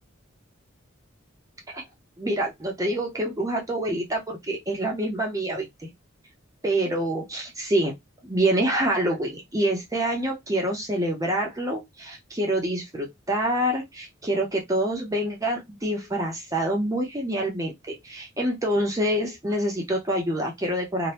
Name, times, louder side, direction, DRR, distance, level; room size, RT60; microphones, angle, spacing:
voice 1, 2.2-5.9 6.6-7.9 8.2-21.1, right 1 dB, 15° right, 0.6 m, -26 dB
2.7 x 2.2 x 3.2 m
head